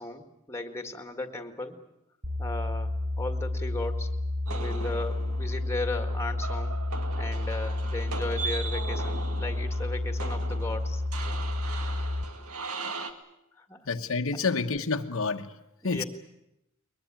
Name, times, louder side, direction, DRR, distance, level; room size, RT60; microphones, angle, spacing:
voice 1, 0.0-1.8 2.4-2.9 3.2-4.2 4.5-6.8 7.2-11.4 11.9-12.3 13.6-13.9 15.9-16.0, left 2 dB, 10° left, 7 dB, 1.9 m, -36 dB
sound 1, 2.2-12.2, left 2 dB, 20° right, 1.3 m, -30 dB
sound 2, 4.5-13.1, right 4 dB, 90° right, 2.0 m, -39 dB
voice 2, 13.9-15.5 15.8-16.0, left 4 dB, 65° left, 5 dB, 1.2 m, -28 dB
21.5 x 21.5 x 9.0 m, 0.86 s
head